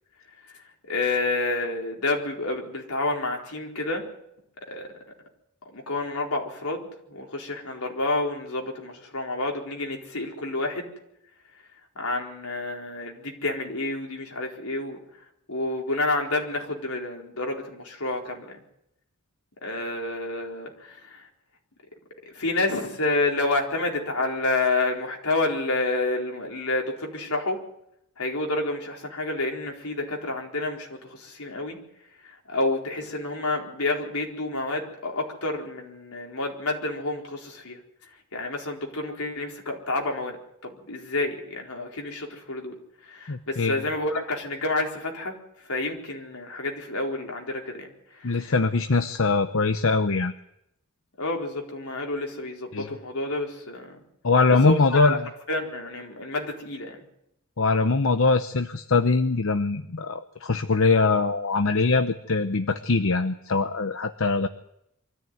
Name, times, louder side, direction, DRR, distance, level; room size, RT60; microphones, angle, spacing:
voice 1, 0.4-4.0 4.7-4.9 5.7-10.9 12.0-15.0 15.5-18.6 19.6-21.3 22.3-27.6 28.2-31.8 32.2-37.8 38.3-40.4 40.6-42.7 43.0-48.5 51.2-54.0 54.6-55.2 55.5-57.0, left 2 dB, 85° left, 0 dB, 4.4 m, -29 dB
voice 2, 43.3-43.8 48.2-50.3 52.7-52.9 54.2-55.2 57.6-64.5, left 3 dB, 65° left, 9 dB, 0.9 m, -22 dB
24.0 x 14.0 x 9.3 m, 0.80 s
head